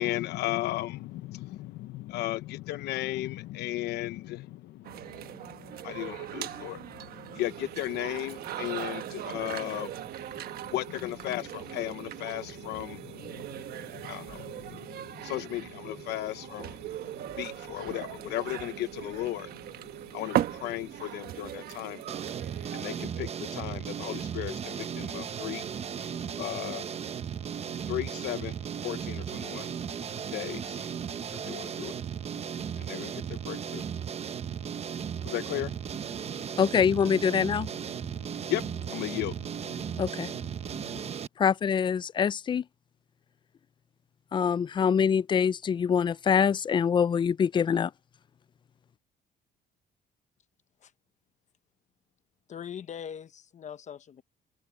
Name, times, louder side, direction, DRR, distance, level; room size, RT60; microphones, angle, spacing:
voice 1, 0.0-36.6 37.6-41.1, left 16 dB, 80° left, 1.0 m, -37 dB
sound 1, 4.8-23.3, right 12 dB, 65° right, 1.2 m, -39 dB
sound 2, 7.4-23.1, right 14 dB, 85° right, 2.0 m, -48 dB
sound 3, 22.1-41.3, right 8 dB, 40° right, 0.9 m, -36 dB
voice 2, 36.6-37.7 40.0-40.3 41.4-42.6 44.3-47.9, left 7 dB, 30° left, 0.4 m, -24 dB
voice 3, 52.5-54.2, left 8 dB, 45° left, 1.1 m, -41 dB
cardioid pair, 110°, 17 cm